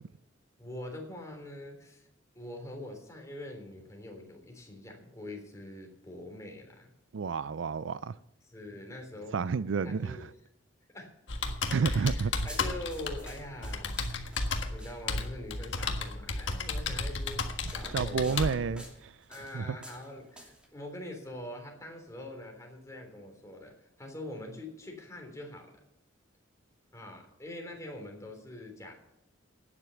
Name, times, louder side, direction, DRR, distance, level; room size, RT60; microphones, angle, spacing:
voice 1, 0.6-2.1 2.3-6.9 8.5-9.4 9.8-10.3 10.9-11.1 11.8-14.1 14.7-18.9 19.3-25.7 26.9-28.9, left 1 dB, 15° left, 3.5 m, -44 dB
voice 2, 7.1-8.2 9.3-10.3 11.7-12.3 17.9-19.8, right 5 dB, 65° right, 0.4 m, -30 dB
Computer keyboard, 11.3-18.5, left 3 dB, 65° left, 1.6 m, -33 dB
sound 1, 12.5-15.4 16.4-16.6 17.2-20.7, equal, 5° right, 2.6 m, -52 dB
12.0 x 9.8 x 7.1 m
head